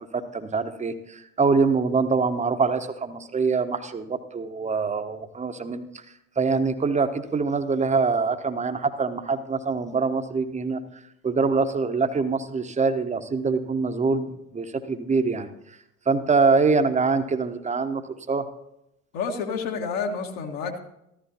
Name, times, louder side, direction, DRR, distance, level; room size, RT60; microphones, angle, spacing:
voice 1, 0.1-5.8 6.4-10.8 11.2-15.5 16.1-18.0 18.3-18.4, right 4 dB, 15° right, 9 dB, 0.9 m, -24 dB
voice 2, 19.1-20.8, left 5 dB, 60° left, 2 dB, 1.7 m, -29 dB
14.0 x 13.0 x 2.9 m, 0.82 s
figure-of-eight pair, 65°, 41 cm